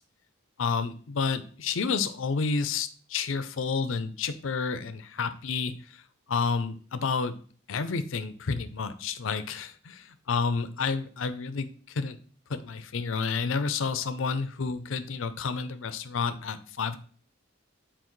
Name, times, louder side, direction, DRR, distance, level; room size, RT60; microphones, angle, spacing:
voice 1, 0.6-6.0 6.3-7.3 7.7-12.2 12.5-17.0, left 5 dB, 65° left, 11 dB, 0.5 m, -30 dB
7.7 x 4.2 x 3.1 m, 0.43 s
head